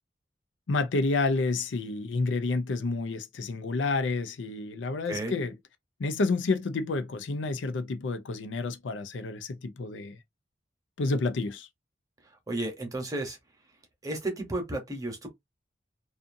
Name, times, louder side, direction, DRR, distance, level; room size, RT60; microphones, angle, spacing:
voice 1, 0.7-5.5 6.0-10.2 11.0-11.7, left 3 dB, 80° left, 0.5 m, -29 dB
voice 2, 12.5-13.4 14.0-15.3, right 2 dB, 20° right, 0.9 m, -33 dB
2.6 x 2.5 x 2.5 m
head